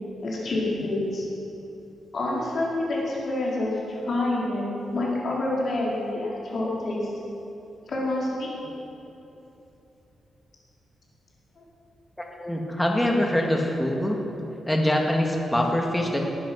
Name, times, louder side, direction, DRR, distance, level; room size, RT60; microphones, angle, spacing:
voice 1, 0.2-1.3 2.1-3.7 4.1-4.6 4.9-7.1 7.9-8.5 11.6-11.7, left 2 dB, 45° left, -5 dB, 4.4 m, -27 dB
voice 2, 12.4-14.2 14.7-16.2, left 1 dB, 5° left, 1 dB, 1.9 m, -24 dB
19.5 x 10.5 x 6.3 m, 3.0 s
wide cardioid pair, 150°, 0 cm